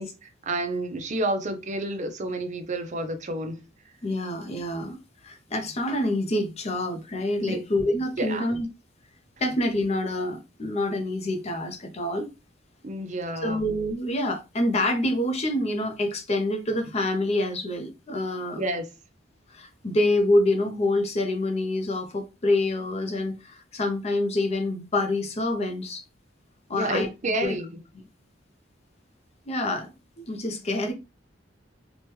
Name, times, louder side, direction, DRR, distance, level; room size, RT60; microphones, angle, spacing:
voice 1, 0.0-3.6 7.4-7.6 8.2-8.5 12.8-13.6 18.6-18.9 26.7-27.8, right 1 dB, 40° right, 0.5 m, -30 dB
voice 2, 4.0-5.0 5.2-8.7 9.4-12.3 13.4-18.6 19.5-26.0 26.7-27.1 27.4-27.5 29.5-30.9, left 1 dB, 35° left, 0.5 m, -26 dB
2.9 x 2.2 x 3.0 m
head